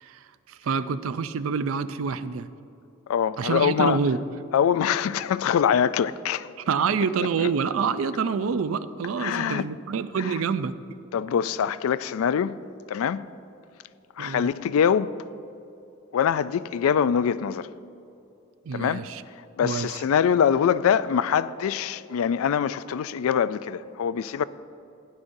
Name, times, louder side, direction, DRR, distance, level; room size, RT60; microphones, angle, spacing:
voice 1, 0.0-2.5 3.4-4.2 6.7-10.8 14.2-14.5 18.7-19.2 19.6-20.0, right 6 dB, 75° right, 0.4 m, -27 dB
voice 2, 3.1-4.0 4.5-6.5 7.4-7.5 9.2-9.7 10.2-10.3 11.1-12.6 12.9-13.2 14.2-15.1 16.1-17.7 18.7-19.0 19.6-24.4, left 8 dB, 90° left, 0.3 m, -24 dB
16.0 x 9.7 x 2.6 m
head